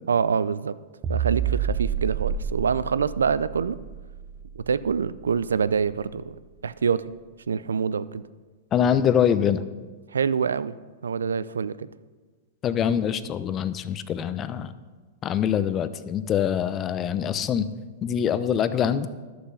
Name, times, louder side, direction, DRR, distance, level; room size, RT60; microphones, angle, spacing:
voice 1, 0.1-0.8 1.1-3.8 4.5-6.3 6.6-7.0 7.5-8.2 10.1-10.8 11.0-11.9, right 6 dB, 85° right, 16 dB, 0.4 m, -25 dB
sound 1, 1.0-5.5, right 8 dB, 30° right, 0.6 m, -29 dB
voice 2, 8.7-9.6 12.6-14.7 15.2-17.7 18.0-19.1, left 8 dB, 30° left, 13 dB, 0.6 m, -24 dB
11.5 x 6.9 x 5.6 m, 1.4 s
hypercardioid pair, 110°, 0 cm